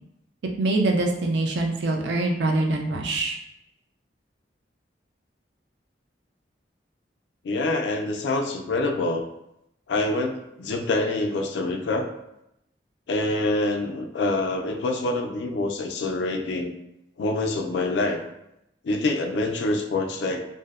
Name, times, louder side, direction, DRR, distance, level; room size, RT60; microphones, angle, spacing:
voice 1, 0.6-3.4, right 2 dB, 75° right, 1 dB, 0.4 m, -24 dB
voice 2, 7.4-9.3 9.9-12.1 13.1-16.7 17.2-18.2 18.8-20.5, left 2 dB, 75° left, 4 dB, 0.3 m, -26 dB
2.6 x 2.0 x 2.3 m, 0.84 s
head